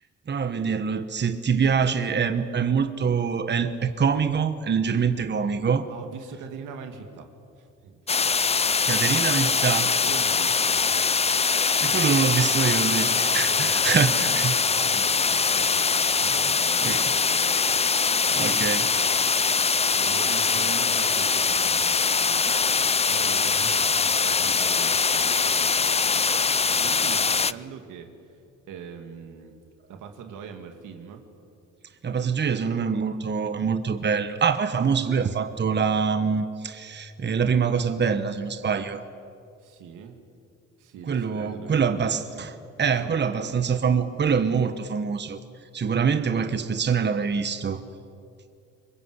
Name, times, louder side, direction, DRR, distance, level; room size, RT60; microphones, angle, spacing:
voice 1, 0.3-5.9 8.9-9.9 11.8-14.5 16.8-17.0 18.4-18.9 32.0-39.0 41.1-42.5 42.8-45.4 45.7-47.8, right 6 dB, 35° right, 9 dB, 1.3 m, -25 dB
voice 2, 5.9-7.3 7.6-8.0 10.0-11.3 11.9-12.3 12.7-17.8 18.2-18.9 19.9-25.8 26.1-28.4 28.7-29.5 29.9-31.2 39.6-40.2 40.8-42.5 42.9-43.6, right 6 dB, 85° right, 5 dB, 2.7 m, -41 dB
sound 1, 8.1-27.5, left 5 dB, 20° left, 0.5 m, -23 dB
25.0 x 22.0 x 8.2 m, 2.5 s
cardioid pair, 90°, 30 cm